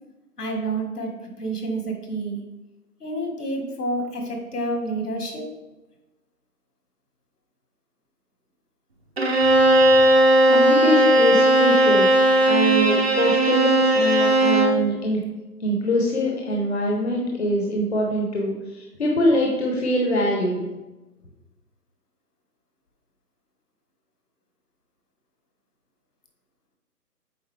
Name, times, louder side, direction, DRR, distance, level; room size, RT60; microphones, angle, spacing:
voice 1, 0.4-2.4 3.0-5.5, right 2 dB, 70° left, 3 dB, 1.7 m, -29 dB
Bowed string instrument, 9.2-14.8, right 1 dB, 40° right, 0.7 m, -17 dB
voice 2, 10.5-12.1 12.4-15.2 15.6-20.7, left 1 dB, 40° left, -1 dB, 0.9 m, -23 dB
8.0 x 3.8 x 3.3 m, 1.1 s
hypercardioid pair, 170°, 48 cm